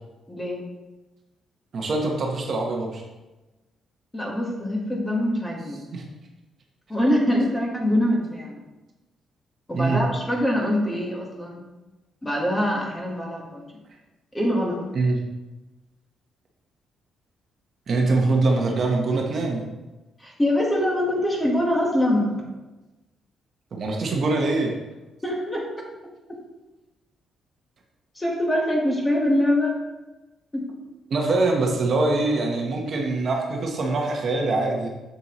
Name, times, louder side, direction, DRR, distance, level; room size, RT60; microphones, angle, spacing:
voice 1, 0.3-0.6 4.1-5.9 6.9-8.6 9.7-11.6 12.2-13.6 14.3-14.8 20.2-22.4 25.2-25.7 28.1-29.8 30.5-30.7, left 1 dB, 10° left, -1 dB, 1.3 m, -24 dB
voice 2, 1.7-3.0 5.9-6.0 9.7-10.0 14.9-15.2 17.9-19.7 23.7-24.7 31.1-34.9, right 3 dB, 45° right, 1 dB, 0.9 m, -23 dB
7.0 x 6.8 x 3.0 m, 1.1 s
cardioid pair, 155°, 0 cm